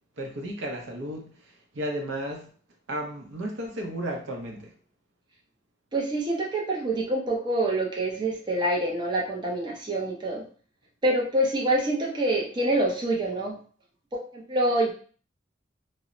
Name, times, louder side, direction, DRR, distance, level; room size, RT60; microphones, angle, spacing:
voice 1, 0.2-2.5 2.9-4.7, right 1 dB, 75° right, 1 dB, 0.6 m, -34 dB
voice 2, 5.9-10.4 11.0-13.6 14.3-14.9, right 1 dB, 25° right, -3 dB, 0.5 m, -26 dB
2.0 x 2.0 x 3.6 m, 0.42 s
head